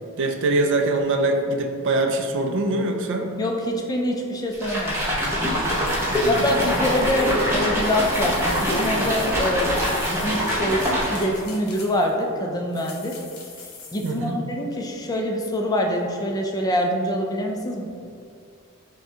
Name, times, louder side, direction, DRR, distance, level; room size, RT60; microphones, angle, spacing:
voice 1, 0.2-3.3 6.1-6.5 14.0-14.4, right 2 dB, 55° right, 4 dB, 0.4 m, -23 dB
voice 2, 3.4-5.0 6.3-9.8 10.1-13.2 13.9-18.1, equal, 15° left, 1 dB, 0.4 m, -25 dB
sound 1, 4.5-11.4, equal, 10° right, 0.7 m, -24 dB
sound 2, 5.7-12.2 12.7-14.3, left 4 dB, 75° left, 0.7 m, -42 dB
5.8 x 2.2 x 2.8 m, 2.4 s
head